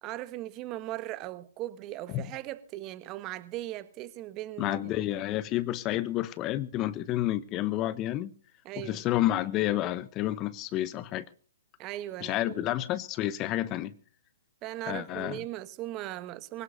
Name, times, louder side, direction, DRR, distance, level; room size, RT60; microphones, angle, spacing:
voice 1, 0.0-4.9 8.6-9.0 11.8-12.6 14.6-16.6, right 15 dB, 30° right, 1.4 m, -38 dB
voice 2, 4.6-8.3 8.8-11.3 12.2-13.9 14.9-15.4, left 14 dB, 25° left, 0.8 m, -30 dB
24.5 x 17.5 x 2.6 m
figure-of-eight pair, 125°, 0 cm